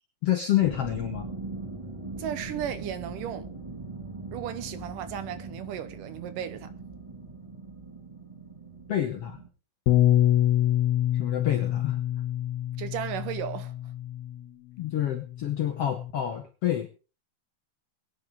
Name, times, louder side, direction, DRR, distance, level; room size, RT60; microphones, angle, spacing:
voice 1, 0.2-1.3 8.9-9.4 11.1-12.0 14.8-16.9, left 11 dB, 70° left, 1.4 m, -28 dB
sound 1, 0.6-9.5, right 3 dB, 30° right, 0.5 m, -40 dB
voice 2, 2.2-3.5 4.3-6.7 12.8-13.7, right 10 dB, 75° right, 2.3 m, -35 dB
Bass guitar, 9.9-14.4 15.1-16.1, left 12 dB, 85° left, 2.8 m, -25 dB
22.0 x 9.5 x 3.6 m
omnidirectional pair, 4.2 m